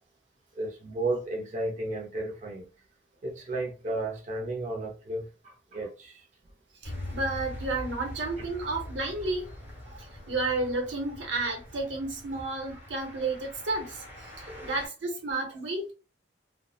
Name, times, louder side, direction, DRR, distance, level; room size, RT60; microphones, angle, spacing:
voice 1, 0.6-2.6 3.2-5.3 5.7-6.2 8.4-8.5 9.9-10.0 14.5-14.7, right 2 dB, 45° right, 0.6 m, -33 dB
sound 1, 6.8-14.9, left 1 dB, 10° right, 1.1 m, -43 dB
voice 2, 6.8-9.4 10.0-15.9, right 2 dB, 85° right, 0.8 m, -32 dB
2.6 x 2.1 x 2.3 m
head